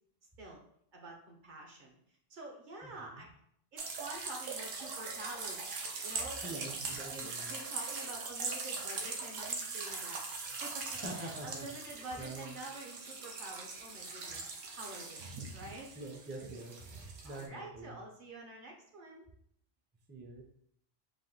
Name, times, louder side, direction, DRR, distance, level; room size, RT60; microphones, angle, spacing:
voice 1, 0.9-2.0 2.3-3.3 3.7-5.7 6.0-6.7 7.1-10.9 11.2-14.5 14.8-15.9 17.2-19.3, right 2 dB, 50° right, 0 dB, 0.7 m, -48 dB
voice 2, 2.8-3.3 6.4-7.5 11.0-12.5 16.0-18.0 20.1-20.4, right 2 dB, 15° right, 0 dB, 0.3 m, -45 dB
sound 1, 3.8-17.5, right 4 dB, 85° right, 1.0 m, -41 dB
3.5 x 2.5 x 3.8 m, 0.68 s
omnidirectional pair, 1.2 m